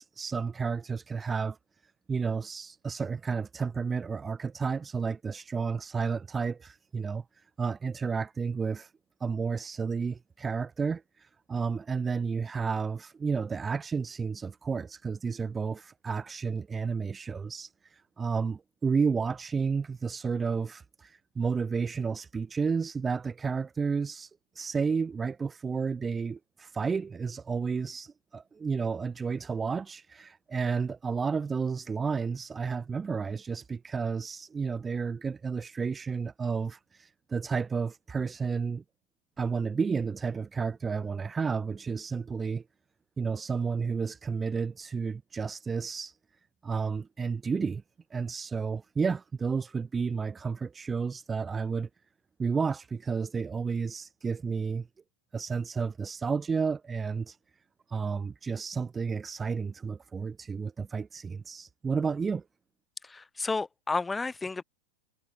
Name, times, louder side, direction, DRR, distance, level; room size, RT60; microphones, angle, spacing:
voice 1, 0.0-1.6 2.1-8.9 9.2-38.8 39.4-42.6 43.2-46.2 46.6-47.8 48.1-51.9 52.4-54.9 55.3-57.4 57.9-62.4, right 5 dB, 15° right, 2.6 m, -31 dB
voice 2, 63.0-64.6, left 3 dB, 10° left, 4.2 m, -32 dB
figure-of-eight pair, 90°, 0 cm